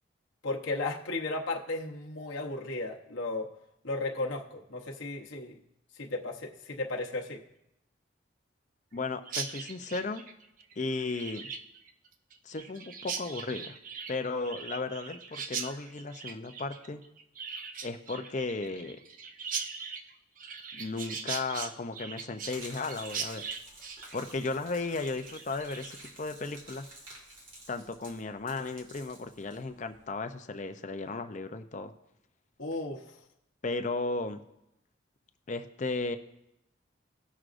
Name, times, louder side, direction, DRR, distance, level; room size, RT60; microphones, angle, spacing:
voice 1, 0.4-3.5 3.8-5.5 6.0-7.4 32.6-33.2, left 2 dB, 85° left, 0 dB, 1.0 m, -35 dB
voice 2, 8.9-10.2 10.8-11.4 12.4-13.8 14.1-17.0 17.8-19.0 20.7-23.4 24.1-26.9 27.7-31.9 33.6-34.4 35.5-36.2, left 3 dB, 40° left, 7 dB, 0.6 m, -35 dB
Chirp tweet, 9.3-26.1, right 6 dB, 45° right, 0.6 m, -40 dB
Gurgling / Liquid, 22.4-30.1, right 2 dB, 90° right, 2.5 m, -51 dB
18.0 x 6.2 x 2.6 m, 0.86 s
head